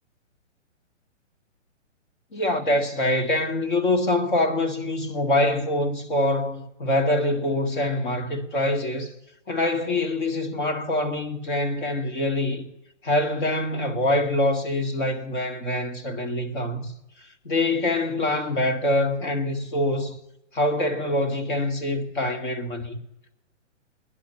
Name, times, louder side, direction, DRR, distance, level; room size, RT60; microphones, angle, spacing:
voice 1, 2.3-9.1 9.5-12.7 13.0-16.9 17.2-20.2 20.5-23.0, left 1 dB, 40° left, 2.0 m, -25 dB
19.5 x 11.0 x 5.7 m
hypercardioid pair, 170°, 37 cm